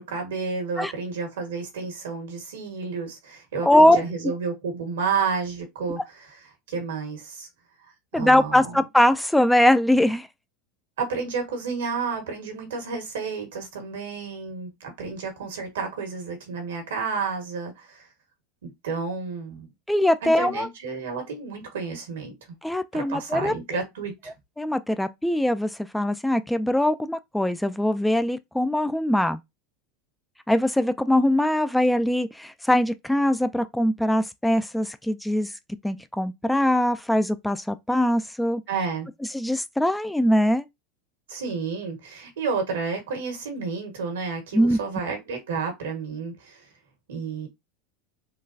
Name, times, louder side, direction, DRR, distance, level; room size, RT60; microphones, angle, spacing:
voice 1, 0.0-6.4 6.7-7.5 7.8-8.8 11.0-18.1 18.6-19.7 20.2-22.3 22.9-24.3 38.7-39.1 41.3-46.7 47.1-47.5, right 5 dB, 85° right, 1.4 m, -31 dB
voice 2, 3.7-4.0 8.1-10.3 19.9-20.7 22.6-23.5 24.6-29.4 30.5-35.5 35.8-38.6 39.3-40.6 44.5-44.8, left 1 dB, 5° left, 0.3 m, -22 dB
3.8 x 2.3 x 2.6 m
hypercardioid pair, 100°, 0 cm